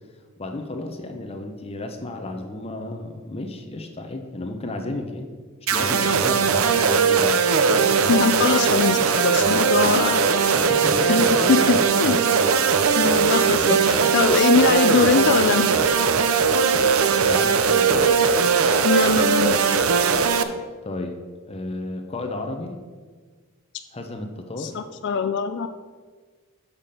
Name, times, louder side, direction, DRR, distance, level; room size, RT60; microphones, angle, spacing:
voice 1, 0.4-5.3 5.7-7.4 7.7-8.0 10.7-11.2 11.5-11.6 13.7-14.1 17.2-18.1 20.8-21.2 21.5-22.8 23.9-24.7, left 2 dB, 25° left, 4 dB, 0.7 m, -33 dB
sound 1, 5.7-20.4, right 6 dB, 65° right, 0.6 m, -19 dB
voice 2, 8.1-10.5 11.1-12.2 13.0-15.7 18.8-19.6 24.6-25.7, left 6 dB, 50° left, 9 dB, 0.3 m, -22 dB
6.9 x 5.8 x 6.8 m, 1.5 s
head